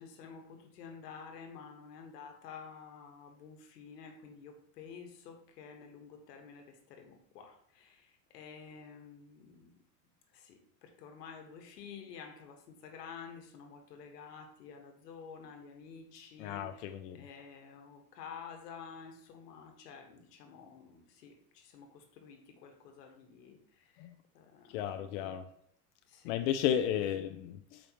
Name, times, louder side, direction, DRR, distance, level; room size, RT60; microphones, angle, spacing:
voice 1, 0.0-9.7 10.3-24.1 24.3-25.2 26.1-26.5 27.0-27.1, left 6 dB, 80° left, 1.5 m, -50 dB
voice 2, 16.4-17.2 24.0-24.1 24.7-25.4 26.2-27.8, left 10 dB, 50° left, 0.6 m, -33 dB
6.7 x 5.1 x 3.0 m
supercardioid pair, 125°, 47 cm